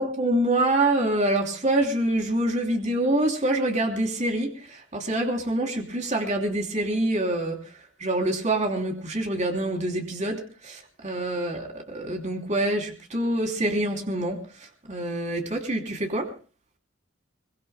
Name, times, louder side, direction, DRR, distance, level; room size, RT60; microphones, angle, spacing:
voice 1, 0.0-7.6 8.0-14.4 14.9-16.3, right 1 dB, 35° right, 3 dB, 3.1 m, -26 dB
24.5 x 23.0 x 2.2 m, 0.36 s
head